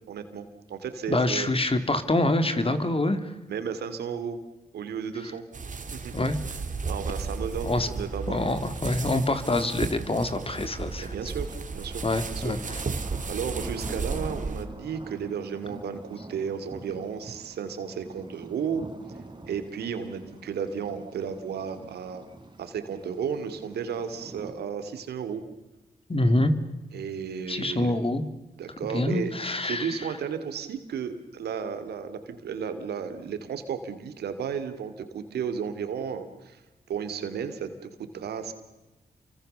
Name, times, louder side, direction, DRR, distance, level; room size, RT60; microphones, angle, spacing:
voice 1, 0.1-1.5 3.5-4.4 4.7-5.4 5.9-6.2 6.9-8.4 11.0-12.5 13.3-18.8 19.5-22.2 22.6-25.4 26.9-27.9 28.6-29.3 29.6-36.6 36.9-37.7 38.1-38.5, right 7 dB, 80° right, 10 dB, 2.7 m, -33 dB
voice 2, 1.1-3.3 6.1-6.4 7.6-7.9 8.3-11.1 12.0-12.8 26.1-26.6 27.5-28.2 28.9-30.1, left 2 dB, 35° left, 10 dB, 3.1 m, -26 dB
sound 1, 5.5-14.6, right 4 dB, 50° right, 2.8 m, -34 dB
sound 2, 7.1-7.2 7.4-7.5 8.4-9.1 10.3-24.5, right 2 dB, 30° right, 4.7 m, -46 dB
28.5 x 24.5 x 6.9 m, 1.1 s
supercardioid pair, 40°, 16 cm